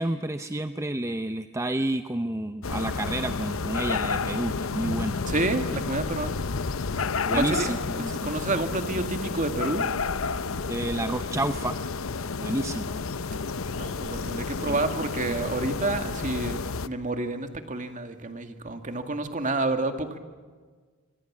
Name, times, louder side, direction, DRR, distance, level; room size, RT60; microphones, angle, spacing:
voice 1, 0.0-5.2 7.3-8.3 10.7-11.8 12.4-13.0 14.6-14.8 15.3-15.4, right 1 dB, 15° right, 9 dB, 0.7 m, -30 dB
sound 1, 2.6-16.9, left 4 dB, 75° left, 0.8 m, -31 dB
voice 2, 5.3-6.3 7.3-9.9 12.7-12.8 13.7-20.2, right 2 dB, 40° right, 7 dB, 2.1 m, -29 dB
25.5 x 25.0 x 7.4 m, 1.5 s
head